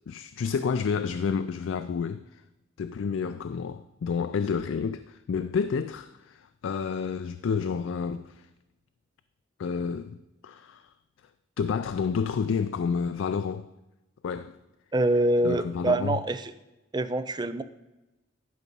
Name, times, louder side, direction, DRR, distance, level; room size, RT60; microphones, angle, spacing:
voice 1, 0.1-2.4 2.8-8.5 9.6-10.9 11.6-13.7 14.2-14.6 15.4-16.2, left 6 dB, 80° left, 0.4 m, -30 dB
voice 2, 14.9-16.5 16.9-17.6, right 2 dB, 20° right, 0.4 m, -25 dB
11.0 x 5.3 x 5.3 m
head